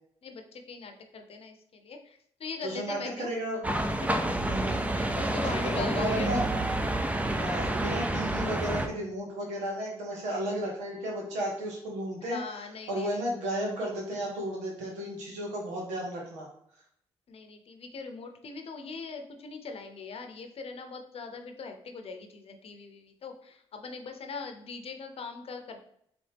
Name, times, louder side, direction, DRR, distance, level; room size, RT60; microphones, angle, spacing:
voice 1, 0.2-3.3 4.0-4.4 4.9-6.5 12.2-13.2 17.3-25.8, left 4 dB, 55° left, 5 dB, 0.7 m, -41 dB
voice 2, 2.6-3.6 4.4-5.0 5.8-6.4 7.3-12.4 12.9-16.5, right 1 dB, 85° right, -1 dB, 1.3 m, -33 dB
sound 1, 3.6-8.9, right 1 dB, 10° right, 0.5 m, -29 dB
4.1 x 3.2 x 3.4 m, 0.68 s
supercardioid pair, 65°, 12 cm